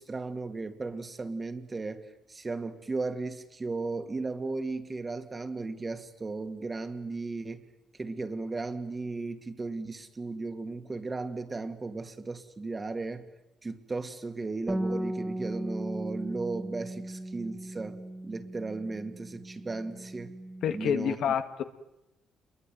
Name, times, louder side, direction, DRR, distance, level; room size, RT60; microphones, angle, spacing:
voice 1, 0.0-7.7 8.0-13.3 13.6-20.3 20.7-21.2, right 3 dB, 25° right, 7 dB, 2.6 m, -36 dB
Bass guitar, 14.7-20.9, right 1 dB, 5° right, 2.2 m, -37 dB
voice 2, 20.6-21.6, left 8 dB, 75° left, 8 dB, 2.1 m, -28 dB
28.0 x 22.5 x 9.4 m, 0.88 s
cardioid pair, 90°, 0 cm